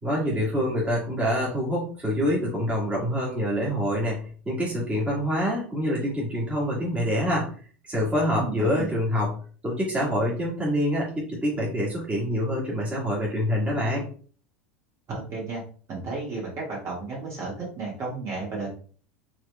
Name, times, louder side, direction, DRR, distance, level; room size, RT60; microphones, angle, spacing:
voice 1, 0.0-7.5 7.8-9.4 9.6-14.1, equal, 20° right, -5 dB, 1.9 m, -26 dB
voice 2, 8.4-8.9 15.1-15.6 15.9-18.7, right 3 dB, 40° right, -4 dB, 1.8 m, -33 dB
4.7 x 3.1 x 2.3 m, 0.43 s
hypercardioid pair, 85°, 7 cm